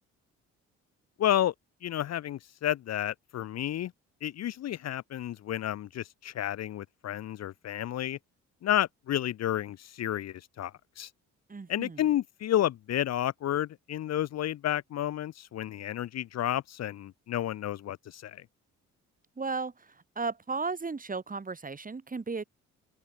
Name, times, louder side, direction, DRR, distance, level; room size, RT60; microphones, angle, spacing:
voice 1, 1.2-1.5 1.8-3.9 4.2-8.2 8.6-11.1 11.7-18.4, left 12 dB, 60° left, 0.7 m, -31 dB
voice 2, 11.5-12.0 19.4-22.4, right 4 dB, 25° right, 5.0 m, -35 dB
open air
cardioid pair, 90°, 30 cm